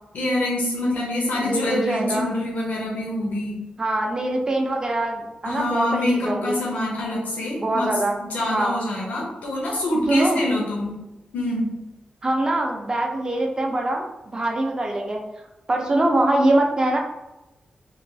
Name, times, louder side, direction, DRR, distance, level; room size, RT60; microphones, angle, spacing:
voice 1, 0.1-3.6 5.4-7.9 8.2-10.9 11.3-11.7, left 1 dB, 85° left, -4 dB, 0.7 m, -25 dB
voice 2, 1.3-2.3 3.8-6.6 7.6-8.2 8.5-8.8 10.1-10.4 12.2-15.2 15.7-17.0, right 1 dB, 30° right, 1 dB, 0.4 m, -23 dB
3.0 x 2.2 x 2.6 m, 0.98 s
wide cardioid pair, 135°, 3 cm